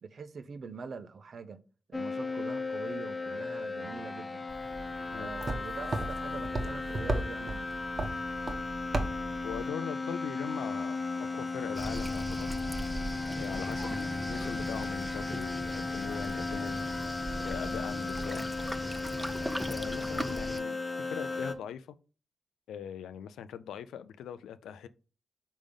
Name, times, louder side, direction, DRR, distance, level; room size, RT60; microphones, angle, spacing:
voice 1, 0.0-1.6 1.9-4.6 5.1-7.7, right 5 dB, 65° right, 0.7 m, -44 dB
sound 1, 1.9-21.5, left 3 dB, 35° left, 1.0 m, -36 dB
sound 2, 4.5-9.7, right 2 dB, 50° right, 1.2 m, -36 dB
voice 2, 9.4-12.5 13.4-16.8 17.4-18.4 19.7-22.0 22.7-24.9, left 8 dB, 85° left, 0.4 m, -41 dB
Waves surf, 11.7-20.6, right 1 dB, 5° right, 0.7 m, -39 dB
5.0 x 3.6 x 5.2 m
supercardioid pair, 40°, 0 cm